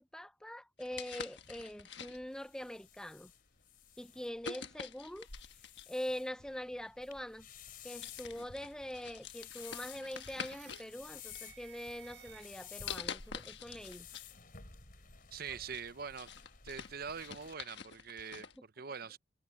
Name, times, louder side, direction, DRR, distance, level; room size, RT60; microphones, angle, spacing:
voice 1, 0.0-3.3 4.0-5.3 5.9-7.5 7.8-14.1, equal, 5° left, 0.5 m, -43 dB
sound 1, 0.8-2.4 3.2-3.4 4.4-6.0 7.1-7.2 7.6-10.9 11.3-12.0 12.9-14.3 14.6-14.7 15.2-18.6, left 7 dB, 70° left, 1.3 m, -47 dB
sound 2, 1.4-17.5, left 7 dB, 50° left, 4.5 m, -54 dB
sound 3, 9.5-12.9, right 10 dB, 70° right, 4.3 m, -58 dB
voice 2, 15.3-16.3 16.6-19.2, right 6 dB, 55° right, 0.8 m, -44 dB
head